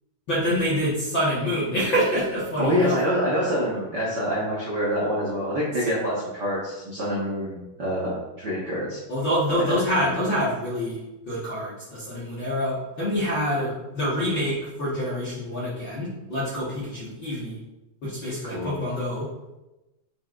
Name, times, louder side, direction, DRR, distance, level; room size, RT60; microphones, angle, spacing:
voice 1, 0.3-3.0 9.1-11.0 11.3-17.6 18.0-19.3, equal, 50° left, -9 dB, 1.5 m, -26 dB
voice 2, 2.6-9.0 9.5-10.1 18.4-18.7, equal, 80° right, -7 dB, 0.9 m, -26 dB
9.1 x 5.8 x 2.6 m, 1.0 s
omnidirectional pair, 4.3 m